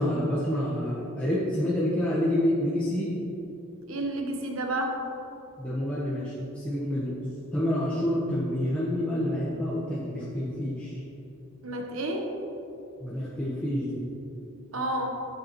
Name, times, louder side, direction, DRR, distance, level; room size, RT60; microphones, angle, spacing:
voice 1, 0.0-3.1 5.6-7.2 7.5-10.9 13.0-14.0, left 1 dB, 5° left, -9 dB, 1.4 m, -28 dB
voice 2, 3.9-5.0 11.6-12.3 14.7-15.1, right 1 dB, 70° right, 2 dB, 1.3 m, -30 dB
13.0 x 8.0 x 3.2 m, 2.9 s
head